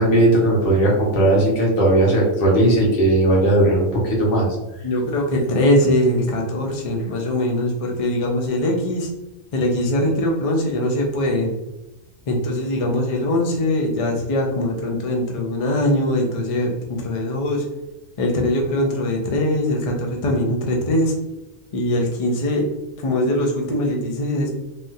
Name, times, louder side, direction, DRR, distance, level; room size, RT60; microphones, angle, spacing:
voice 1, 0.0-4.5, right 1 dB, 85° left, -3 dB, 1.4 m, -17 dB
voice 2, 4.8-9.1 9.5-11.6 12.3-17.6 18.2-21.2 21.7-22.7 23.0-24.5, left 1 dB, 60° left, 1 dB, 0.3 m, -21 dB
3.4 x 2.3 x 2.7 m, 0.98 s
omnidirectional pair, 1.4 m